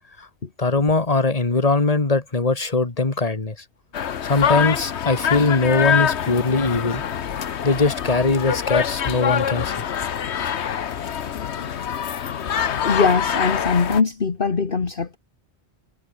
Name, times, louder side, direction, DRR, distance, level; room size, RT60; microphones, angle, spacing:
voice 1, 0.6-3.6 4.2-7.0 7.6-9.8, left 3 dB, 35° left, 2.1 m, -21 dB
sound 1, 3.9-14.0, left 8 dB, 70° left, 1.2 m, -25 dB
voice 2, 12.8-15.2, left 5 dB, 50° left, 1.6 m, -21 dB
omnidirectional pair, 1.2 m